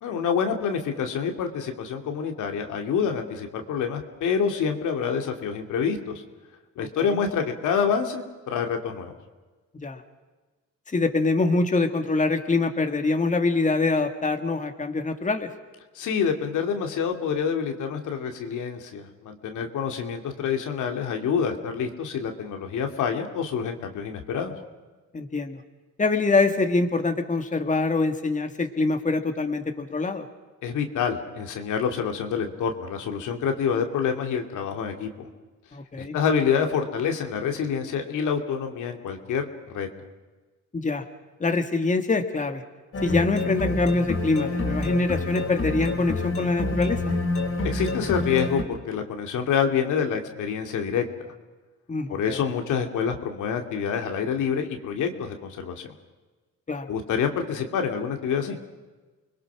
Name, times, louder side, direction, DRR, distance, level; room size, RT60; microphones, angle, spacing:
voice 1, 0.0-6.2 6.8-9.1 15.9-24.5 30.6-35.3 35.9-39.9 47.6-51.3 52.1-55.9 56.9-58.6, left 6 dB, 80° left, 4 dB, 2.6 m, -27 dB
voice 2, 6.8-7.2 9.8-10.0 10.9-15.5 25.1-25.6 26.0-30.3 35.7-36.2 40.7-41.0 41.4-42.6 43.0-47.0 51.9-52.4 56.7-56.9, left 3 dB, 25° left, 6 dB, 1.9 m, -24 dB
sound 1, 42.9-48.6, left 2 dB, 45° left, 4.0 m, -27 dB
29.5 x 21.5 x 6.2 m, 1.3 s
cardioid pair, 90°, 30 cm